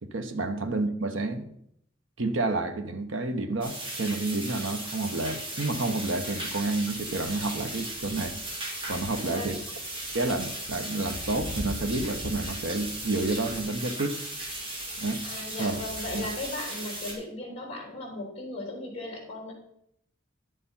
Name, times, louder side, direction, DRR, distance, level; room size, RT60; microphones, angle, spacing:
voice 1, 0.0-1.5 2.2-8.4 8.9-9.6 10.1-14.2 15.0-15.2 15.6-15.7 16.1-16.3, right 2 dB, 90° right, 1.0 m, -30 dB
sound 1, 3.6-17.1, right 1 dB, 30° right, 2.9 m, -36 dB
voice 2, 9.1-9.6 15.2-19.5, left 2 dB, 30° left, 3.3 m, -37 dB
10.5 x 6.7 x 5.6 m
head